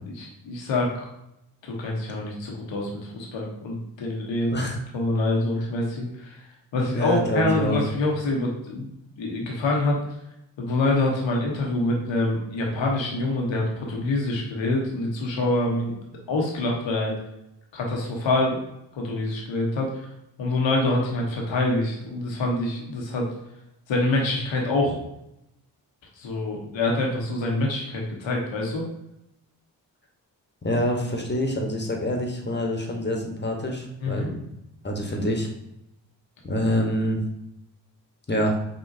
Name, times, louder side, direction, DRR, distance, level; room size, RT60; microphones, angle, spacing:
voice 1, 0.1-0.9 1.6-4.6 4.9-6.4 6.7-10.0 10.6-15.9 16.3-17.2 17.7-18.6 18.9-20.1 20.4-23.3 23.9-25.0 26.2-28.8 34.0-34.3, left 2 dB, 75° left, -1 dB, 1.0 m, -26 dB
voice 2, 6.8-7.8 30.6-34.4 34.8-35.5 36.4-37.2 38.3-38.6, equal, 25° left, 1 dB, 1.1 m, -26 dB
5.3 x 2.8 x 2.7 m, 0.82 s
supercardioid pair, 40°, 46 cm